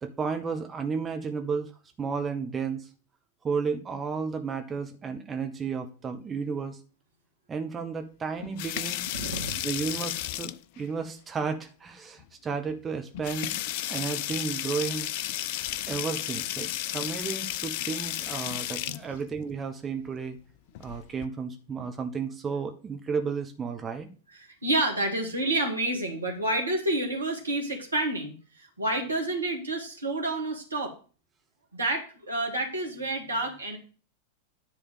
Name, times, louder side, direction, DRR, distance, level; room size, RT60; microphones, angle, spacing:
voice 1, 0.0-1.7 2.0-2.9 3.4-6.8 7.5-9.0 9.6-13.6 13.9-15.1 15.9-20.4 20.8-24.1, right 5 dB, 20° right, 5 dB, 1.0 m, -33 dB
sound 1, 8.4-10.8 12.2-12.3 12.7-12.8 13.1-19.0 20.7-21.3, left 13 dB, 50° left, 0.4 m, -33 dB
voice 2, 9.1-9.6 15.6-15.7 24.4-31.0 31.7-33.8, right 1 dB, 80° right, 1 dB, 2.0 m, -29 dB
10.0 x 3.5 x 7.1 m, 0.36 s
figure-of-eight pair, 90°, 0 cm